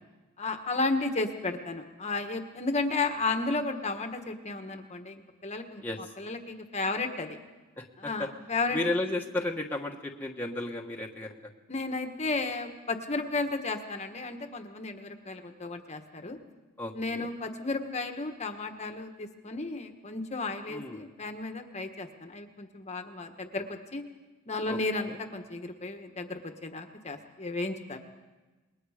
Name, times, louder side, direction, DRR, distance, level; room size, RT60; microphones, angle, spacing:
voice 1, 0.4-5.8 6.2-7.4 8.0-8.8 11.7-16.4 16.9-24.0 24.5-28.0, left 3 dB, 30° left, 5 dB, 1.4 m, -33 dB
voice 2, 7.8-8.3 8.7-11.3 16.8-17.3 20.7-21.0 24.7-25.2, left 2 dB, 10° left, -1 dB, 1.4 m, -34 dB
28.0 x 21.0 x 5.1 m, 1.2 s
head